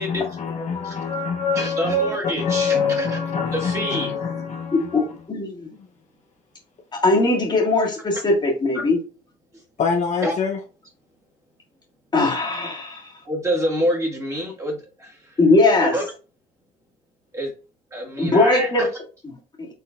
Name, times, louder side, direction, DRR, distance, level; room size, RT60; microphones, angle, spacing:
voice 1, 0.0-5.2 9.8-10.6, left 6 dB, 45° left, 0.8 m, -25 dB
voice 2, 1.6-2.8 3.6-4.1 10.2-10.3 13.3-14.8 15.8-16.0 17.3-17.5 17.9-18.9, right 1 dB, 20° right, 2.0 m, -25 dB
voice 3, 4.7-5.7 6.9-9.0 12.1-13.0 15.4-16.0 18.2-18.9 19.6-19.7, left 2 dB, 25° left, 1.8 m, -20 dB
4.4 x 3.8 x 2.5 m
cardioid pair, 95°, 16 cm